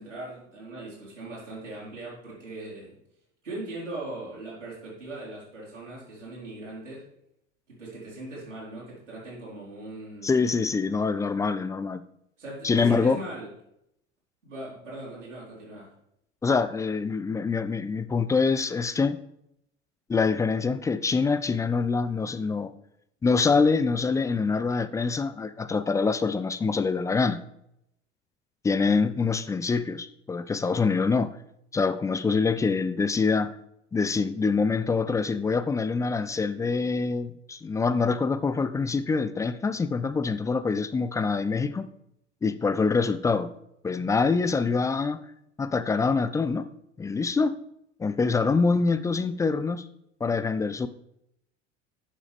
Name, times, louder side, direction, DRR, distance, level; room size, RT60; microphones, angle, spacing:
voice 1, 0.0-2.9 3.4-7.0 7.7-10.5 12.4-13.5 14.4-15.9, right 2 dB, 80° right, 4.0 m, -39 dB
voice 2, 10.2-12.0 12.6-13.2 16.4-19.2 20.1-22.7 23.2-27.4 28.6-31.4 31.7-33.5 33.9-41.9 42.4-43.5 43.8-45.2 45.6-46.7 47.0-47.5 48.0-49.8 50.2-50.9, left 4 dB, 10° left, 0.3 m, -25 dB
11.0 x 7.1 x 3.5 m
figure-of-eight pair, 65°, 36 cm